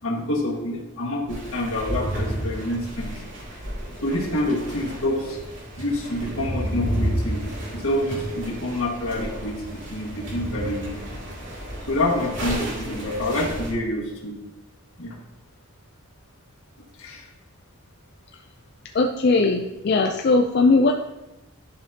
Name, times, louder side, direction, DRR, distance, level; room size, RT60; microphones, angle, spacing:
voice 1, 0.0-3.1 4.0-5.4 5.8-7.4 7.7-10.9 11.9-14.4 15.0-15.2 17.0-17.3, left 1 dB, 75° left, -2 dB, 1.6 m, -27 dB
sound 1, 1.3-13.7, equal, 55° right, 2.3 m, -31 dB
voice 2, 18.9-20.9, left 3 dB, 50° left, 3 dB, 0.4 m, -19 dB
11.0 x 5.0 x 2.8 m, 0.99 s
head